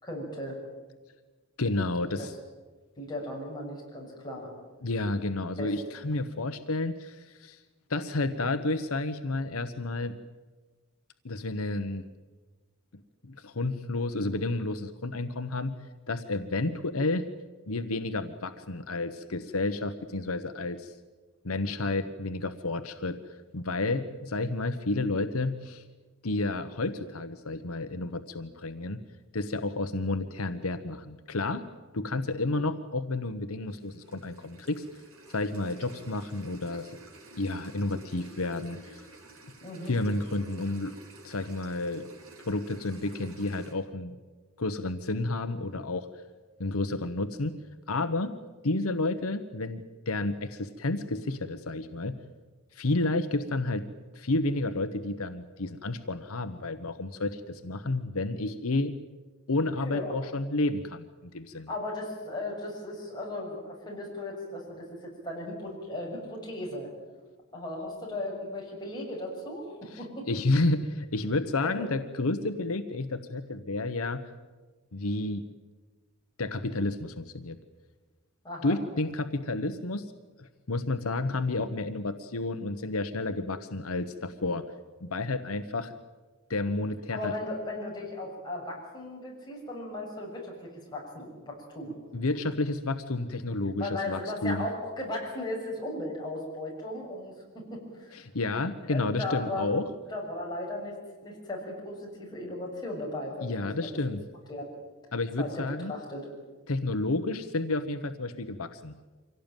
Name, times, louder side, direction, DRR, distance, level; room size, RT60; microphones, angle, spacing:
voice 1, 0.0-0.6 2.2-2.3 3.0-4.5 5.6-5.7 39.6-39.9 59.9-60.1 61.7-66.9 67.5-70.3 71.6-71.7 78.4-78.8 87.1-92.0 93.8-98.2 98.9-99.7 100.1-103.9 104.5-104.7 105.4-105.6 105.9-106.3, left 1 dB, 20° left, -3 dB, 7.1 m, -36 dB
voice 2, 1.6-2.3 4.8-7.6 7.9-10.2 11.2-12.0 13.2-15.8 16.1-17.3 17.7-20.9 21.4-23.2 23.5-25.8 26.2-29.0 29.3-31.7 31.9-34.8 35.3-36.9 37.4-39.0 39.9-40.9 41.2-42.1 42.4-44.1 44.6-46.1 46.6-47.5 47.9-48.4 48.6-52.2 52.7-53.9 54.1-58.9 59.5-61.7 69.9-74.2 74.9-75.4 76.4-77.6 78.6-80.1 80.4-84.6 85.0-85.9 86.5-87.3 92.1-94.7 98.1-99.9 103.4-104.2 105.1-105.9 106.7-108.9, left 2 dB, 80° left, 9 dB, 1.1 m, -31 dB
sound 1, 33.7-43.7, right 2 dB, 75° right, 3.9 m, -51 dB
25.0 x 17.0 x 9.1 m, 1.3 s
head